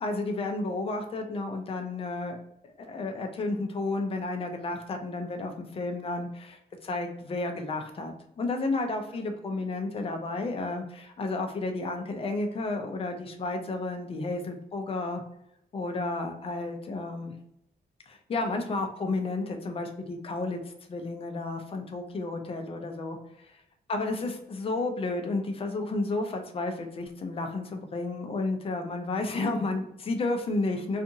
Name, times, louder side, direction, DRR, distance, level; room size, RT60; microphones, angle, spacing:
voice 1, 0.0-2.4 2.8-15.2 15.7-17.3 18.1-20.6 20.9-23.5 23.9-31.0, left 2 dB, 35° left, 4 dB, 0.4 m, -32 dB
2.7 x 2.4 x 2.6 m, 0.80 s
wide cardioid pair, 170°, 18 cm